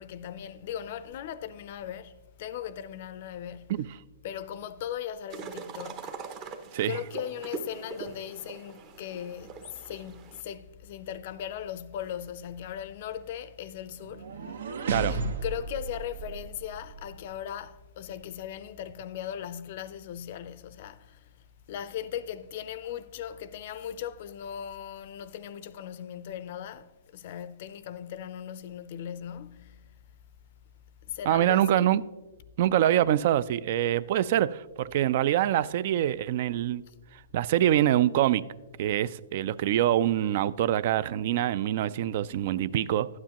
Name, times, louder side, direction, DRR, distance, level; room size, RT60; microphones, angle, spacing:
voice 1, 0.0-3.9 4.2-6.1 6.8-14.3 15.1-21.3 21.7-29.8 31.1-31.9 36.9-37.0, left 10 dB, 45° left, 0.5 m, -38 dB
sound 1, 5.3-10.4, right 5 dB, 30° right, 0.7 m, -42 dB
sound 2, 14.0-17.2, right 3 dB, 80° right, 0.9 m, -34 dB
voice 2, 14.9-15.2 31.3-32.0 32.6-36.8 37.3-38.4 38.8-43.1, right 12 dB, 45° right, 0.3 m, -25 dB
12.0 x 9.5 x 2.9 m
hypercardioid pair, 155°, 0 cm